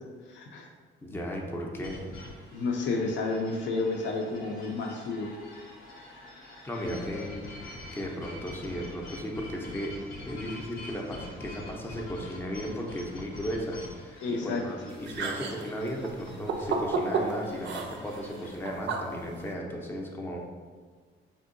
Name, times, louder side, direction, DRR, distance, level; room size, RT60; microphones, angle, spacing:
voice 1, 0.3-0.7 2.5-5.3 14.2-14.6, left 3 dB, 70° left, 1 dB, 0.5 m, -31 dB
voice 2, 1.0-2.0 6.6-10.0 10.2-20.4, equal, 10° left, 0 dB, 0.5 m, -36 dB
sound 1, 1.8-18.5, left 2 dB, 85° left, 0.9 m, -45 dB
sound 2, 14.9-19.5, right 4 dB, 65° right, 0.4 m, -33 dB
3.6 x 2.7 x 2.5 m, 1.5 s
cardioid pair, 90°, 20 cm